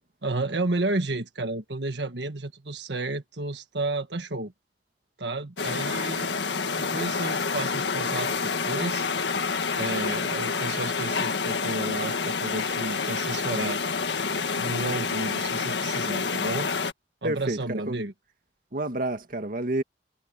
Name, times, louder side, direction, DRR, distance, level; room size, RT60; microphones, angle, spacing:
voice 1, 0.2-4.5 5.2-6.3 6.8-9.1 9.7-13.8 14.6-16.7 17.2-18.1, right 2 dB, 80° right, 1.6 m, -31 dB
sound 1, 5.6-16.9, left 5 dB, 80° left, 1.7 m, -28 dB
voice 2, 17.2-18.0 18.7-19.8, right 1 dB, 55° right, 1.9 m, -29 dB
head